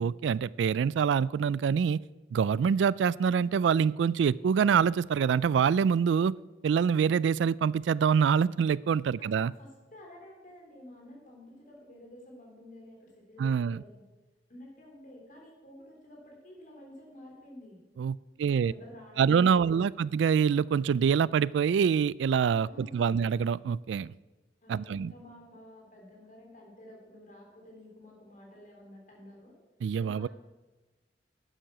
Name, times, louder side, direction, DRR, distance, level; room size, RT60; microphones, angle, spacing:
voice 1, 0.0-2.0 2.3-6.3 6.6-9.5 13.4-13.8 18.0-18.7 19.2-24.1 24.7-25.1 29.8-30.3, right 7 dB, 75° right, 21 dB, 0.3 m, -25 dB
voice 2, 9.2-14.0 14.5-17.8 18.4-20.0 22.6-23.1 24.6-29.6 30.0-30.3, left 1 dB, 45° left, 0 dB, 4.0 m, -51 dB
11.5 x 9.1 x 6.0 m, 1.2 s
head